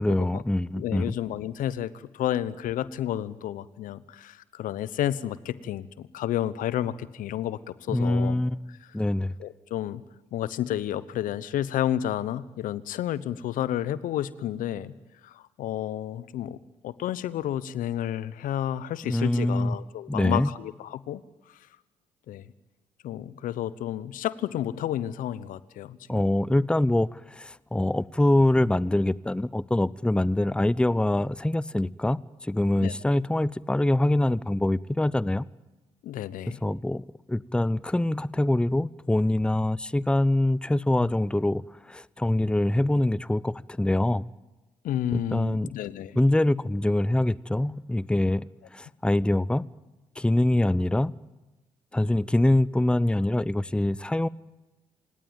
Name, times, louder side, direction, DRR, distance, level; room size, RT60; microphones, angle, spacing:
voice 1, 0.0-1.1 7.9-8.6 8.9-9.3 19.0-19.7 20.1-20.5 26.1-35.4 36.6-37.0 37.3-41.6 41.9-44.2 45.1-45.7 46.1-48.5 48.7-49.7 50.2-51.1 51.9-54.3, left 1 dB, 5° left, 21 dB, 0.7 m, -24 dB
voice 2, 0.7-8.4 9.4-10.0 10.3-14.9 15.2-16.6 16.8-21.2 22.3-22.4 23.0-26.2 32.8-32.9 36.0-36.6 41.0-41.1 44.8-46.2, left 11 dB, 70° left, 18 dB, 1.0 m, -31 dB
28.0 x 18.0 x 9.0 m, 1.1 s
hypercardioid pair, 50°, 14 cm